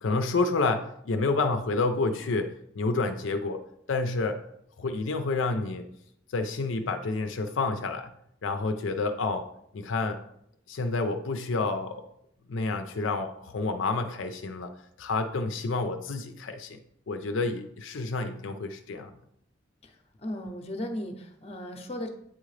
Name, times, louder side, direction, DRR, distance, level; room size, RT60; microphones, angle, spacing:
voice 1, 0.0-3.6 3.9-4.4 4.8-5.9 6.3-8.1 8.4-9.5 9.7-10.2 10.7-12.0 12.5-14.7 15.0-16.8 17.1-19.1, left 3 dB, 70° left, 7 dB, 0.5 m, -29 dB
voice 2, 19.8-22.1, left 1 dB, 30° left, 5 dB, 0.7 m, -36 dB
8.7 x 3.7 x 3.2 m, 0.73 s
head